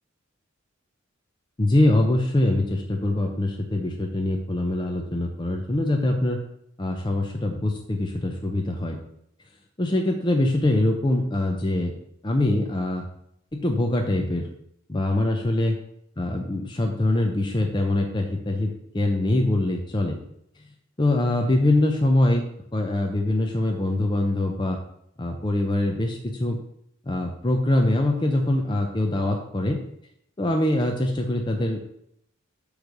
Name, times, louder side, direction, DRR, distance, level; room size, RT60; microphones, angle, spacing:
voice 1, 1.6-6.4 6.8-9.0 9.8-11.9 12.2-13.1 13.5-14.5 14.9-15.8 16.2-20.2 21.0-22.4 22.7-24.8 25.2-26.6 27.1-29.8 30.4-31.8, left 1 dB, 20° left, 2 dB, 0.6 m, -23 dB
8.3 x 3.3 x 6.5 m, 0.73 s
head